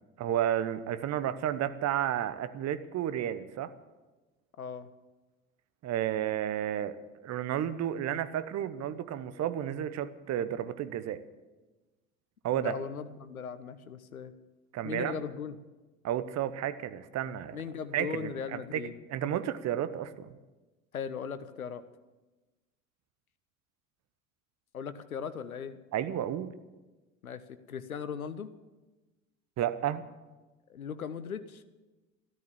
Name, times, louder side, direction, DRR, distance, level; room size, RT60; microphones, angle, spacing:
voice 1, 0.2-3.7 5.8-7.0 7.2-11.2 12.4-12.7 14.7-15.1 16.0-17.6 17.9-20.3 25.9-26.6 29.6-30.0, right 10 dB, 40° right, 13 dB, 1.1 m, -32 dB
voice 2, 4.6-4.9 12.5-14.3 14.8-15.6 17.5-19.0 20.9-21.8 24.7-25.8 27.2-28.5 30.7-31.6, left 7 dB, 85° left, 12 dB, 0.8 m, -38 dB
13.5 x 13.0 x 7.2 m, 1.2 s
figure-of-eight pair, 70°, 41 cm